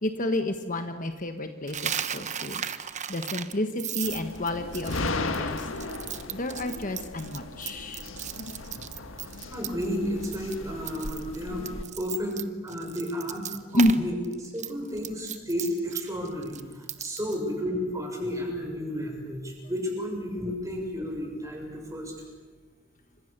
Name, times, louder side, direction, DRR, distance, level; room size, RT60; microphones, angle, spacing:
voice 1, 0.0-2.6 3.1-5.7 6.3-8.0 13.7-13.9, left 1 dB, 40° left, 7 dB, 1.4 m, -29 dB
Coin (dropping), 1.7-9.9 10.2-10.6 10.8-14.0 14.2-17.4, right 9 dB, 35° right, 1.1 m, -36 dB
sound 1, 4.0-11.8, left 2 dB, 80° left, 1.7 m, -36 dB
voice 2, 9.1-11.7 11.9-14.1 14.4-22.1, equal, 15° right, 1 dB, 6.7 m, -32 dB
29.5 x 26.0 x 6.9 m, 1.3 s
head